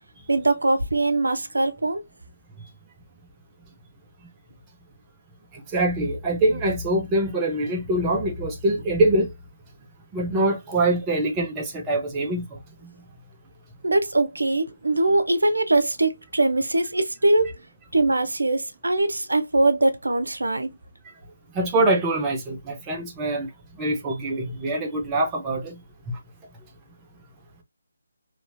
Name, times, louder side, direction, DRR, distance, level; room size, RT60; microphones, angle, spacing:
voice 1, 0.3-2.0 13.8-17.6 17.9-20.7, right 2 dB, 85° right, 0.7 m, -22 dB
voice 2, 5.7-9.3 10.1-12.6 21.5-23.5 23.8-25.8, right 1 dB, 15° right, 0.7 m, -24 dB
3.0 x 2.8 x 2.5 m
figure-of-eight pair, 160°, 0 cm